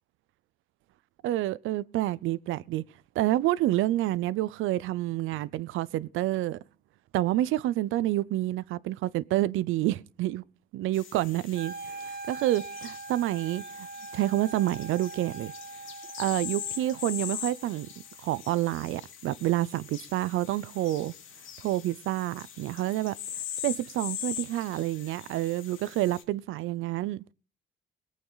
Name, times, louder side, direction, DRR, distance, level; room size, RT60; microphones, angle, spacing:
voice 1, 1.2-2.8 3.2-6.6 7.1-10.4 10.7-13.9 14.1-15.5 16.2-17.9 18.2-21.1 21.6-23.1 23.6-27.3, right 15 dB, 90° right, 0.6 m, -28 dB
sound 1, 10.9-26.2, left 9 dB, 85° left, 2.8 m, -42 dB
Wind instrument woodwind instrument, 11.5-17.6, right 3 dB, 50° right, 0.8 m, -42 dB
21.5 x 8.6 x 3.9 m
cardioid pair, 90°, 20 cm